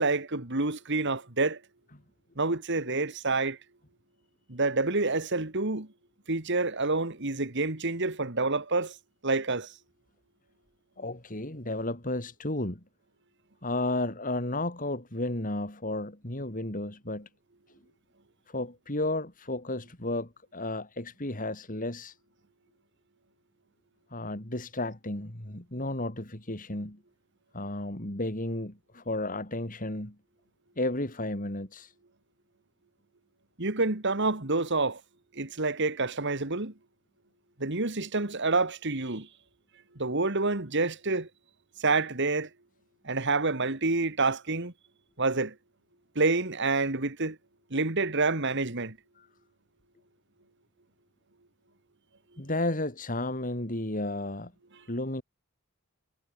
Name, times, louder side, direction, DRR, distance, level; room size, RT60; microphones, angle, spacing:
voice 1, 0.0-1.6 2.4-3.6 4.5-5.9 6.3-8.9 9.2-9.7 33.6-35.0 35.4-36.7 37.6-39.3 40.0-41.3 41.8-42.5 43.0-44.7 45.2-45.5 46.2-47.4 47.7-49.0, right 3 dB, 55° right, 2.2 m, -28 dB
voice 2, 11.0-12.8 13.6-17.3 18.5-22.2 24.1-27.0 27.5-30.1 30.8-31.9 49.2-49.3 52.4-54.5 54.9-55.2, left 2 dB, 40° left, 3.7 m, -33 dB
head